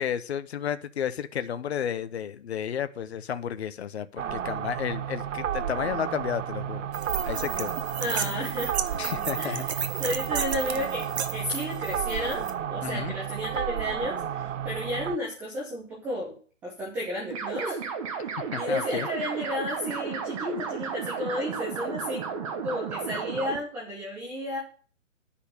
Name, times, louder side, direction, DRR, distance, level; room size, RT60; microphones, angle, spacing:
voice 1, 0.0-6.9 7.3-7.7 8.9-9.7 12.8-13.1 18.5-19.1, left 9 dB, 55° left, 12 dB, 0.8 m, -32 dB
sound 1, 4.2-15.2, right 9 dB, 75° right, 0.7 m, -32 dB
sound 2, 6.9-12.5, right 7 dB, 55° right, 1.2 m, -34 dB
voice 2, 8.0-8.7 9.4-16.3 16.6-17.9 18.2-22.2 22.6-24.6, left 1 dB, 5° right, -6 dB, 0.6 m, -33 dB
sound 3, 17.3-23.6, right 6 dB, 25° right, 1.2 m, -33 dB
10.5 x 5.6 x 6.6 m, 0.41 s
hypercardioid pair, 155°, 38 cm